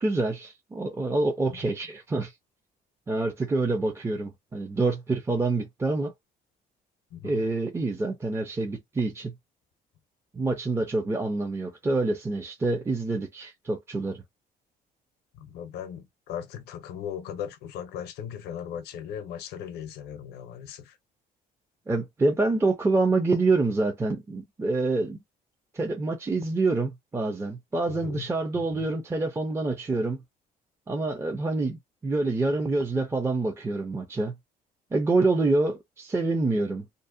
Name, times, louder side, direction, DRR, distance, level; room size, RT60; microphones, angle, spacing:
voice 1, 0.0-2.3 3.1-6.1 7.2-9.3 10.3-14.2 21.9-25.2 25.7-30.2 30.9-34.3 34.9-36.9, right 3 dB, 15° right, 0.4 m, -26 dB
voice 2, 7.1-7.5 15.3-21.0 27.9-28.9, left 9 dB, 80° left, 0.7 m, -38 dB
2.5 x 2.0 x 2.5 m
cardioid pair, 110°, 17 cm